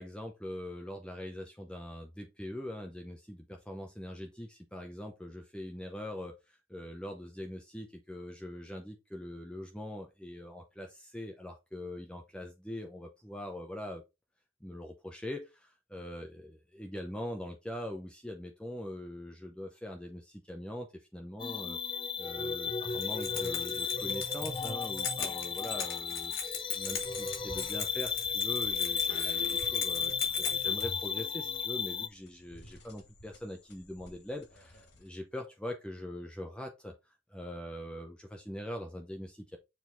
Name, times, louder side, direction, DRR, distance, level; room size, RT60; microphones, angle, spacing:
voice 1, 0.0-14.0 14.6-21.8 22.2-26.3 26.7-39.6, left 1 dB, 5° left, 0.8 m, -42 dB
sound 1, 21.4-32.1, left 6 dB, 25° left, 0.4 m, -34 dB
Keys jangling, 22.9-30.8, left 7 dB, 75° left, 2.9 m, -40 dB
sound 2, 26.9-35.3, left 1 dB, 55° left, 2.7 m, -56 dB
7.0 x 4.1 x 4.0 m
head